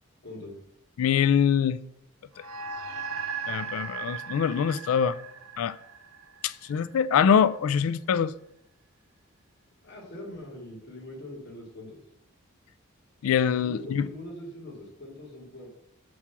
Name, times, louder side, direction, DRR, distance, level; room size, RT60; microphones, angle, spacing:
voice 1, 0.2-0.6 9.8-12.0 13.6-15.7, left 1 dB, 50° left, 2.3 m, -42 dB
voice 2, 1.0-1.8 3.5-5.2 5.6-5.8 6.4-8.3 13.2-14.1, left 7 dB, 70° left, 0.3 m, -24 dB
sound 1, 2.4-7.0, right 6 dB, 90° right, 0.7 m, -37 dB
7.3 x 4.8 x 5.7 m
head